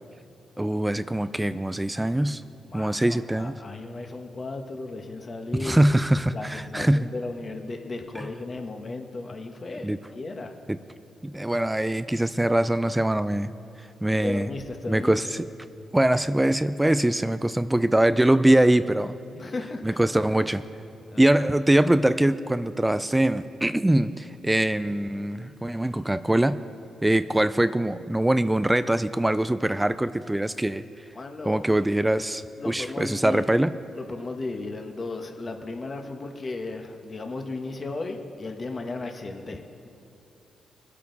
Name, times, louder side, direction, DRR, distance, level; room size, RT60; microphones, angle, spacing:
voice 1, 0.6-2.4 2.7-3.5 5.6-7.1 8.2-8.3 9.8-10.0 10.7-10.8 11.2-13.5 14.0-14.5 14.9-15.5 15.9-19.1 19.8-20.6 21.2-26.6 27.0-30.8 31.5-33.7, right 1 dB, 15° right, 13 dB, 0.4 m, -23 dB
voice 2, 2.7-5.9 6.3-10.5 14.2-15.1 19.3-20.0 21.1-21.2 31.1-31.6 32.6-33.4 34.0-39.9, left 3 dB, 45° left, 4 dB, 1.5 m, -35 dB
21.5 x 8.4 x 4.2 m, 2.7 s
supercardioid pair, 55°, 0 cm